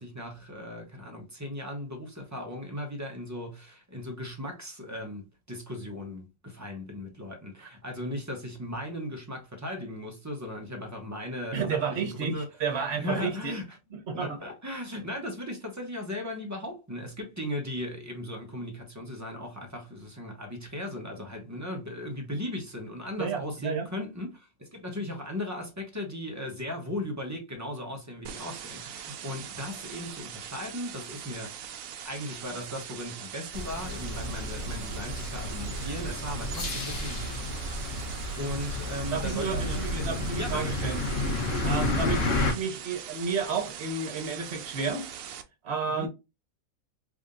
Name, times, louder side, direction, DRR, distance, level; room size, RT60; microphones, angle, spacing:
voice 1, 0.0-13.8 14.1-39.8 40.3-40.8 45.8-46.1, left 1 dB, 15° right, 0.8 m, -37 dB
voice 2, 11.5-13.6 13.9-14.4 23.2-23.9 39.1-41.0 41.6-45.0 45.6-46.1, right 5 dB, 50° right, 1.2 m, -31 dB
sound 1, 28.3-45.4, right 9 dB, 75° right, 1.0 m, -42 dB
sound 2, 33.5-42.5, left 2 dB, 65° left, 1.5 m, -31 dB
3.5 x 2.6 x 3.6 m
omnidirectional pair, 1.5 m